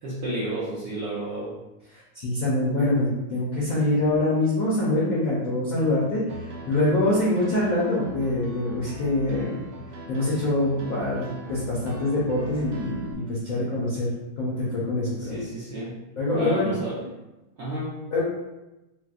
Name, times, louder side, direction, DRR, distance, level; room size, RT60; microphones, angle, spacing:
voice 1, 0.0-1.6 3.7-3.9 15.2-16.0 16.3-17.1 17.6-18.0, right 1 dB, 70° right, -8 dB, 0.9 m, -31 dB
voice 2, 1.9-9.7 10.1-14.1 14.4-15.4 16.2-16.8 18.1-18.2, left 1 dB, 75° left, -6 dB, 0.7 m, -25 dB
Piano, 6.3-13.1, right 1 dB, 90° right, 1.5 m, -41 dB
4.3 x 2.0 x 2.4 m, 1.0 s
omnidirectional pair, 2.3 m